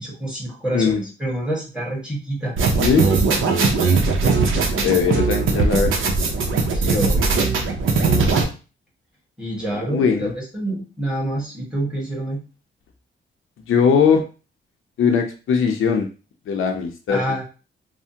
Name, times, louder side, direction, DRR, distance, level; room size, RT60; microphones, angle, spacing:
voice 1, 0.0-2.5 6.7-7.4 9.4-12.4 17.1-17.4, right 1 dB, 5° right, -4 dB, 1.5 m, -27 dB
sound 1, 2.6-8.4, right 4 dB, 70° right, 0.7 m, -19 dB
voice 2, 2.8-3.1 4.8-6.3 9.7-10.3 13.7-14.2 15.0-16.1 16.5-17.2, left 6 dB, 75° left, 4 dB, 0.6 m, -20 dB
3.3 x 2.1 x 2.7 m, 0.34 s
cardioid pair, 105°, 21 cm